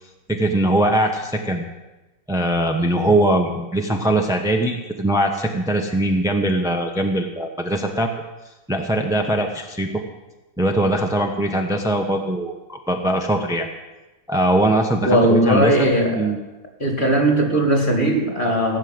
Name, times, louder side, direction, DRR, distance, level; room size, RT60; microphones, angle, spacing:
voice 1, 0.3-1.6 2.3-8.1 8.7-9.9 10.6-13.7 14.3-15.9 16.1-16.4, right 1 dB, 5° right, 3 dB, 0.5 m, -21 dB
voice 2, 15.0-16.3 16.8-18.8, right 1 dB, 25° left, 2 dB, 2.6 m, -18 dB
17.0 x 7.2 x 9.5 m, 1.1 s
omnidirectional pair, 2.2 m